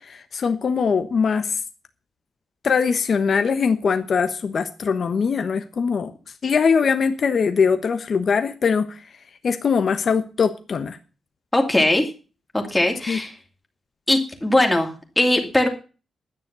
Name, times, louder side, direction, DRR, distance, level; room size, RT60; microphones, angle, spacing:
voice 1, 0.0-1.6 2.6-6.1 6.4-11.0 13.1-13.2, left 5 dB, 50° left, 9 dB, 1.2 m, -22 dB
voice 2, 11.5-12.1 12.5-13.3 14.1-15.7, left 1 dB, 10° left, 2 dB, 2.6 m, -20 dB
11.5 x 9.5 x 6.9 m, 0.35 s
wide cardioid pair, 130°, 0 cm